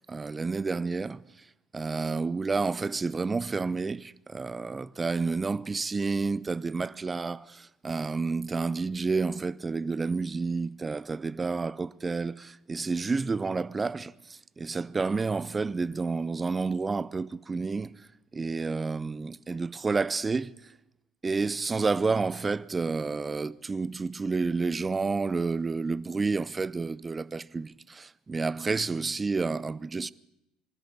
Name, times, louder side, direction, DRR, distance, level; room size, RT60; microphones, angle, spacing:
voice 1, 0.1-1.2 1.7-17.9 18.3-20.5 21.2-30.1, right 4 dB, 25° right, 0.7 m, -30 dB
25.0 x 13.0 x 8.7 m
hypercardioid pair, 65°, 0 cm